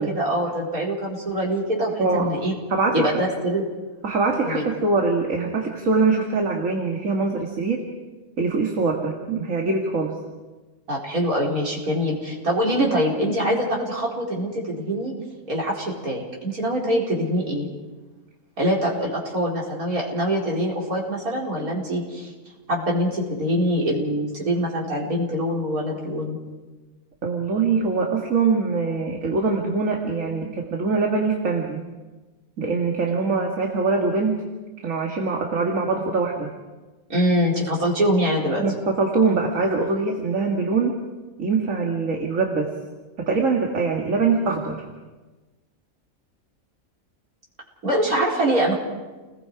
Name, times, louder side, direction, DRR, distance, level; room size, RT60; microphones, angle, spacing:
voice 1, 0.0-2.5 2.9-3.7 4.4-4.6 10.9-15.1 15.5-17.7 18.6-22.3 22.7-26.4 37.1-38.6 47.8-48.7, equal, 80° right, -3 dB, 5.2 m, -24 dB
voice 2, 2.0-2.3 2.7-3.1 4.0-7.9 8.4-10.2 27.2-31.9 32.6-34.4 34.8-36.6 38.6-41.0 41.4-42.8 43.2-44.8, right 4 dB, 65° right, 1 dB, 2.3 m, -23 dB
30.0 x 20.5 x 4.9 m, 1.2 s
omnidirectional pair, 1.5 m